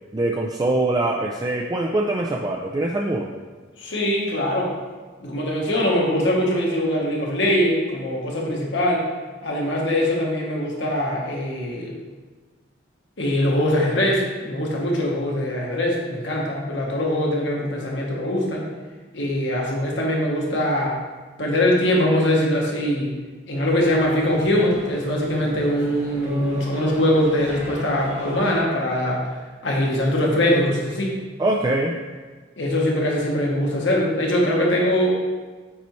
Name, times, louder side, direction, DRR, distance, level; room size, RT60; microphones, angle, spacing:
voice 1, 0.1-3.3 31.4-31.9, right 2 dB, 20° right, 0 dB, 0.3 m, -23 dB
voice 2, 3.8-4.7 5.2-9.0 9.4-12.0 13.2-18.7 19.1-21.0 21.4-23.1 23.5-29.3 29.6-31.2 32.6-35.2, left 1 dB, 65° left, -2 dB, 1.2 m, -22 dB
sound 1, 23.6-28.6, equal, 40° right, 1.3 m, -37 dB
8.4 x 4.1 x 3.1 m, 1.4 s
head